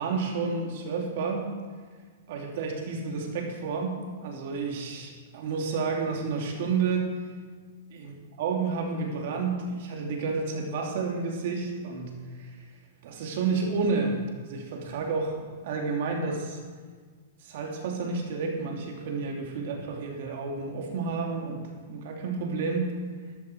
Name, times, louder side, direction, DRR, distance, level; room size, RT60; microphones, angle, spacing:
voice 1, 0.0-1.5 2.3-7.1 7.9-12.5 13.0-15.4 15.6-16.6 17.4-22.9, right 4 dB, 60° right, 1 dB, 3.1 m, -30 dB
12.5 x 12.5 x 4.7 m, 1.5 s
hypercardioid pair, 140°, 0 cm